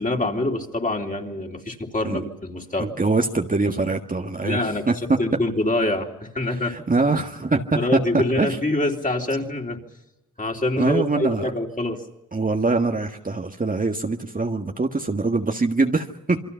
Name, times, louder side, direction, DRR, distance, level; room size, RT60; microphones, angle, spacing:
voice 1, 0.0-3.0 4.4-6.9 7.7-9.8 10.4-12.0, left 2 dB, 25° left, 1 dB, 3.6 m, -25 dB
voice 2, 2.8-5.2 6.7-8.0 8.4-8.5 10.8-11.5 12.3-16.5, right 3 dB, 25° right, 3 dB, 1.6 m, -23 dB
28.5 x 22.5 x 5.7 m, 0.93 s
cardioid pair, 65°, 32 cm